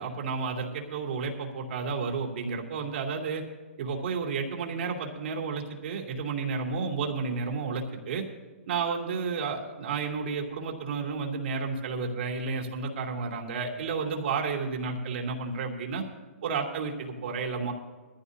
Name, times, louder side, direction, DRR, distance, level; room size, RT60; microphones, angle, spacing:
voice 1, 0.0-3.4 3.8-8.2 8.7-16.0 16.4-17.7, right 5 dB, 60° right, 1 dB, 2.9 m, -31 dB
20.5 x 14.5 x 2.7 m, 1.3 s
hypercardioid pair, 150°, 7 cm